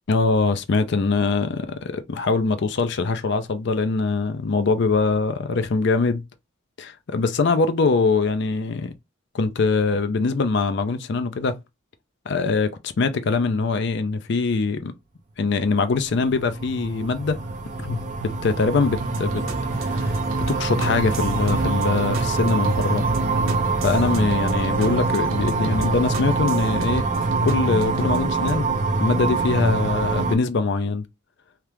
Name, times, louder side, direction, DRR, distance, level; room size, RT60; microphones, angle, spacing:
voice 1, 0.1-6.2 6.8-8.9 9.3-11.6 12.3-14.9 15.4-17.4 17.8-19.4 19.8-23.1 23.8-27.1 27.4-28.7 29.0-31.0, left 4 dB, 55° left, 0.4 m, -23 dB
sound 1, 16.0-30.4, right 3 dB, 35° right, 0.4 m, -24 dB
sound 2, 18.9-28.6, right 2 dB, 85° right, 0.7 m, -33 dB
2.9 x 2.4 x 3.3 m
head